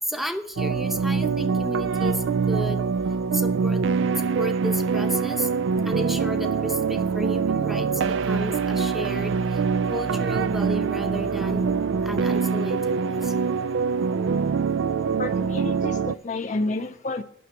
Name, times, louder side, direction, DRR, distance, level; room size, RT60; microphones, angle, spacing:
voice 1, 0.0-2.9 3.3-3.8 4.1-5.5 5.8-11.7 12.0-13.5, equal, ahead, 0.8 m, -33 dB
sound 1, 0.6-16.1, right 5 dB, 65° right, 0.3 m, -24 dB
voice 2, 15.2-17.2, left 2 dB, 40° left, 0.5 m, -30 dB
9.3 x 6.3 x 8.1 m
head